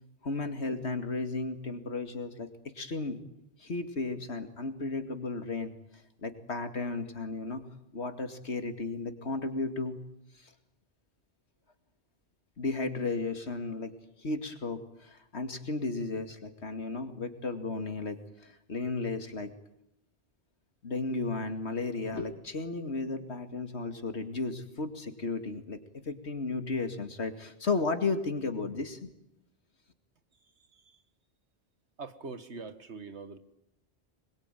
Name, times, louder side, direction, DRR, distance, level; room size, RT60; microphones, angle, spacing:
voice 1, 0.2-3.2 3.6-7.7 7.9-10.0 10.3-10.5 12.6-13.9 14.2-19.5 20.8-29.1, left 3 dB, 75° left, 7 dB, 2.6 m, -34 dB
voice 2, 32.0-33.4, right 4 dB, 85° right, 11 dB, 2.0 m, -43 dB
25.5 x 22.0 x 9.2 m, 0.79 s
omnidirectional pair, 1.1 m